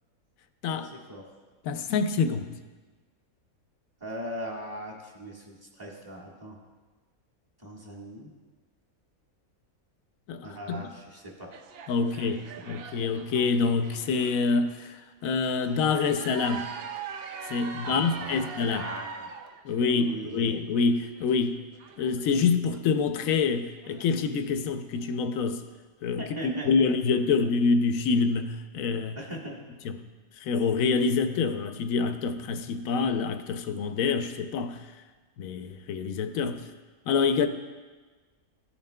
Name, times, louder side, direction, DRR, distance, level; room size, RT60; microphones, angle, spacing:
voice 1, 0.7-1.2 4.0-6.6 7.6-8.3 10.4-11.5 12.0-12.3 12.7-12.8 17.8-19.3 19.7-20.6 26.2-26.9 29.1-29.6, equal, 15° right, -3 dB, 1.5 m, -40 dB
voice 2, 1.6-2.5 10.3-10.9 11.9-14.9 15.2-16.6 17.5-18.8 19.6-21.6 22.0-25.6 26.0-29.2 30.4-34.8 35.4-36.7 37.1-37.5, left 5 dB, 75° left, 9 dB, 1.0 m, -26 dB
sound 1, 11.5-15.0 15.3-24.6 25.0-25.1, right 6 dB, 65° right, 0.6 m, -43 dB
15.0 x 7.2 x 2.2 m, 1.3 s
omnidirectional pair, 1.5 m